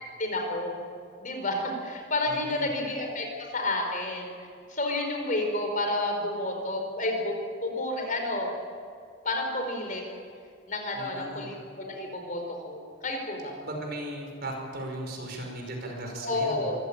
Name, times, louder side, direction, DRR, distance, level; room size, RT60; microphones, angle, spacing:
voice 1, 0.2-0.8 1.2-4.3 4.7-7.4 7.6-8.5 9.2-10.0 10.7-13.6 16.2-16.8, left 2 dB, 40° left, 3 dB, 4.9 m, -30 dB
voice 2, 2.3-2.7 10.9-11.5 13.6-16.7, right 1 dB, 50° right, 2 dB, 5.2 m, -37 dB
25.5 x 16.0 x 8.9 m, 2.2 s
head